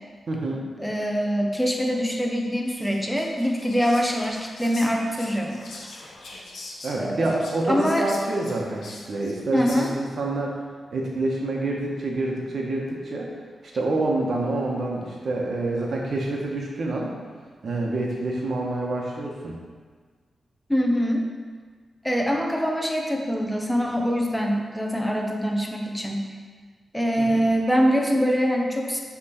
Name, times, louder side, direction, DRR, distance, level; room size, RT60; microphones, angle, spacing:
voice 1, 0.3-0.6 6.8-10.6 10.9-13.3 13.7-17.1 17.6-19.5 27.2-27.4, right 2 dB, 65° right, -2 dB, 1.4 m, -27 dB
voice 2, 0.8-5.6 7.0-7.4 7.7-8.1 9.5-9.9 20.7-21.3 22.0-26.4 26.9-29.0, equal, 5° left, 1 dB, 1.1 m, -24 dB
Whispering, 2.7-10.2, left 2 dB, 70° left, 1.1 m, -43 dB
6.4 x 3.6 x 6.0 m, 1.5 s
supercardioid pair, 45°, 0 cm